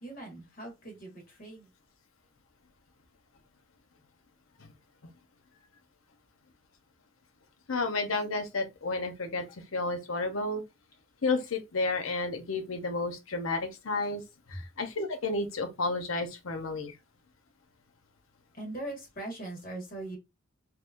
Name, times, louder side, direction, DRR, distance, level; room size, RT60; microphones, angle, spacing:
voice 1, 0.0-1.7 14.5-14.6 18.5-20.2, right 2 dB, 45° left, 1.5 m, -40 dB
voice 2, 7.7-10.6 11.2-14.2 14.5-16.9, left 3 dB, 85° left, 0.7 m, -31 dB
3.5 x 3.0 x 2.5 m
head